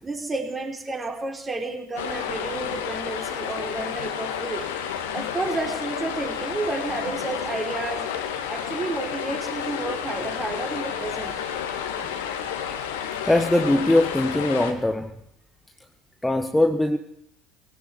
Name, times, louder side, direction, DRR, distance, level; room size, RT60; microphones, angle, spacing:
voice 1, 0.0-4.7 5.1-8.1 8.5-11.4, right 3 dB, 25° right, 2 dB, 5.3 m, -31 dB
sound 1, 2.0-14.7, left 8 dB, 70° left, 2.3 m, -31 dB
voice 2, 13.2-15.1 16.2-17.0, left 1 dB, 10° left, 6 dB, 1.4 m, -21 dB
19.0 x 17.5 x 8.4 m, 0.71 s
figure-of-eight pair, 60°, 0 cm